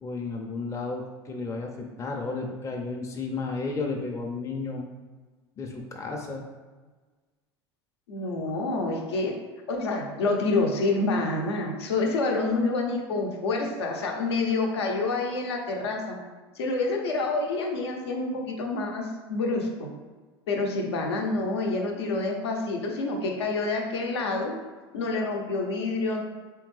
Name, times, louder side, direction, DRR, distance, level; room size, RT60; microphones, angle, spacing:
voice 1, 0.0-4.9 5.6-6.4, left 3 dB, 20° left, 0 dB, 0.5 m, -33 dB
voice 2, 8.1-9.4 9.7-16.2 16.5-19.9 20.5-24.5 24.9-26.2, left 3 dB, 75° left, 1 dB, 0.7 m, -27 dB
3.5 x 3.4 x 3.2 m, 1.3 s
hypercardioid pair, 80°, 14 cm